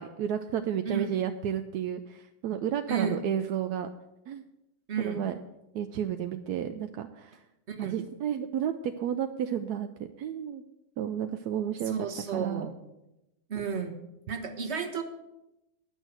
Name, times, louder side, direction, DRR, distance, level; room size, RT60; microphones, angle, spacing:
voice 1, 0.0-3.9 4.3-4.4 5.0-5.3 5.7-7.4 7.8-9.9 10.2-10.6 11.0-11.9 12.3-12.7, right 9 dB, 70° right, 7 dB, 0.9 m, -32 dB
voice 2, 2.9-3.2 4.9-5.3 7.7-8.0 11.9-12.7 13.5-14.0 14.3-15.0, right 6 dB, 40° right, 3 dB, 1.3 m, -32 dB
10.0 x 6.4 x 8.9 m, 0.92 s
omnidirectional pair, 2.2 m